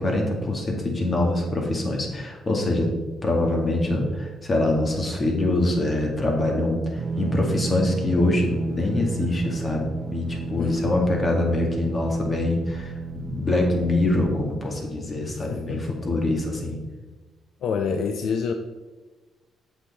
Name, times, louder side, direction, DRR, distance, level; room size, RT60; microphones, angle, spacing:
voice 1, 0.0-2.9 3.2-16.8, left 1 dB, 35° left, 1 dB, 2.1 m, -24 dB
sound 1, 6.9-14.4, right 4 dB, 40° right, 0.9 m, -33 dB
voice 2, 10.6-11.1 15.3-16.2 17.6-18.5, left 6 dB, 65° left, 6 dB, 0.5 m, -28 dB
7.8 x 6.5 x 4.2 m, 1.2 s
cardioid pair, 90°, 0 cm